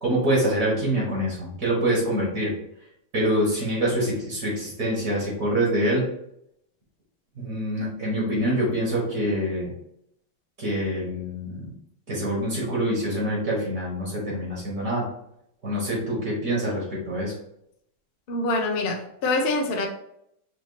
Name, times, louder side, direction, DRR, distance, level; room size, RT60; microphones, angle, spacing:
voice 1, 0.0-2.5 3.1-6.0 7.4-9.7 10.6-11.7 12.1-15.0 15.6-17.3, right 1 dB, 55° right, 1.8 m, -25 dB
voice 2, 18.3-19.9, left 2 dB, 75° left, 0.5 m, -25 dB
5.0 x 2.9 x 2.8 m
omnidirectional pair, 1.9 m